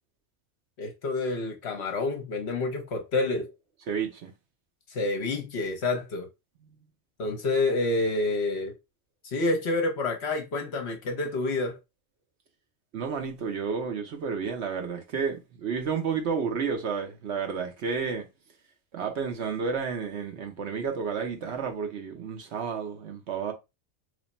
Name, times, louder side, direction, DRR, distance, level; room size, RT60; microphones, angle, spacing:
voice 1, 0.8-3.5 4.9-6.3 7.2-8.7 9.2-11.8, left 2 dB, 55° left, 0.9 m, -28 dB
voice 2, 3.9-4.3 12.9-18.3 18.9-23.5, right 6 dB, 60° right, 1.0 m, -31 dB
3.2 x 2.2 x 4.0 m
omnidirectional pair, 1.4 m